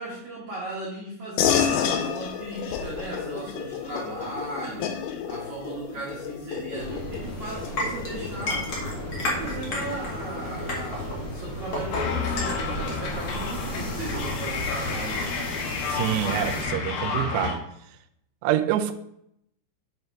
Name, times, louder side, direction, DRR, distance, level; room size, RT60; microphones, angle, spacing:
voice 1, 0.0-8.7 9.2-15.4, right 2 dB, 60° right, -6 dB, 2.0 m, -37 dB
sound 1, 1.4-11.2, left 8 dB, 85° left, 3.2 m, -31 dB
sound 2, 6.7-16.6, left 1 dB, 50° left, 1.5 m, -32 dB
sound 3, 11.9-17.5, left 5 dB, 70° left, 2.6 m, -30 dB
voice 2, 15.8-17.6 18.4-18.9, right 12 dB, 85° right, 5 dB, 2.5 m, -26 dB
6.8 x 5.5 x 4.6 m, 0.74 s
omnidirectional pair, 5.2 m